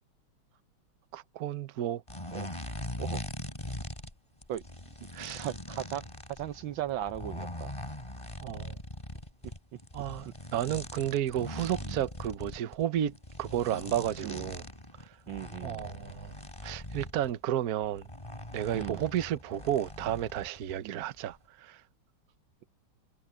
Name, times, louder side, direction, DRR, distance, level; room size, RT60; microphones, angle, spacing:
voice 1, 1.1-2.0 5.1-5.5 8.4-8.8 9.9-14.6 15.6-16.3 16.6-18.1 18.5-21.8, right 11 dB, 55° right, 1.2 m, -32 dB
sound 1, 2.1-4.1 4.4-17.3 17.8-20.8 21.0-21.3, left 1 dB, 15° left, 3.3 m, -41 dB
voice 2, 5.4-7.7 11.8-12.0 14.2-14.5 15.3-15.9 18.7-19.0 20.8-21.0, right 12 dB, 75° right, 1.4 m, -37 dB
omnidirectional pair, 2.3 m